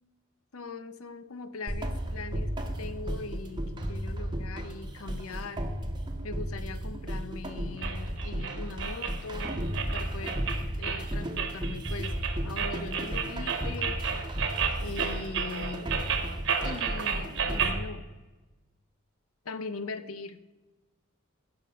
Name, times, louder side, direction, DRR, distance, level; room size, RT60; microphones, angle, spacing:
voice 1, 0.5-5.7 6.2-10.5 10.8-14.0 14.8-16.0 16.6-18.1 19.4-20.4, left 3 dB, 90° left, 13 dB, 0.8 m, -41 dB
sound 1, 1.7-17.7, equal, 20° right, 1.0 m, -34 dB
sound 2, 7.8-17.8, right 7 dB, 60° right, 1.2 m, -32 dB
15.5 x 6.0 x 5.1 m, 1.2 s
head